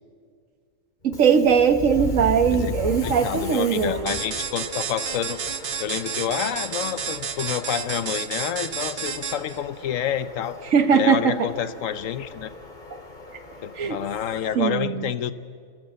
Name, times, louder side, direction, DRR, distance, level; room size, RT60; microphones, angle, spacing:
Subway metro underground, 1.0-14.5, left 2 dB, 40° left, 2.1 m, -37 dB
voice 1, 1.0-4.2 10.7-11.4 13.8-14.0 14.5-15.1, right 7 dB, 85° right, 9 dB, 1.5 m, -20 dB
voice 2, 3.0-5.4 5.8-10.6 10.9-12.5 13.6-15.3, left 9 dB, 85° left, 14 dB, 1.2 m, -28 dB
sound 1, 4.1-9.6, right 7 dB, 45° right, 1.0 m, -31 dB
29.5 x 12.5 x 7.7 m, 2.1 s
omnidirectional pair, 1.3 m